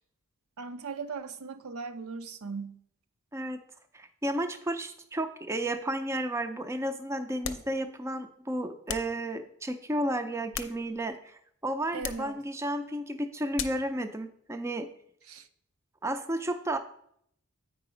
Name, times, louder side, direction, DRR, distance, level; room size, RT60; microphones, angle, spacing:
voice 1, 0.6-2.8 11.9-12.3 15.3-15.5, right 4 dB, 80° right, 0.6 m, -38 dB
voice 2, 3.9-14.9 16.0-16.8, right 1 dB, 10° right, 0.4 m, -32 dB
sound 1, 7.4-7.8 8.9-9.2 10.3-11.2 12.0-12.3 13.5-13.9, left 7 dB, 60° left, 0.6 m, -38 dB
8.5 x 4.9 x 5.0 m
head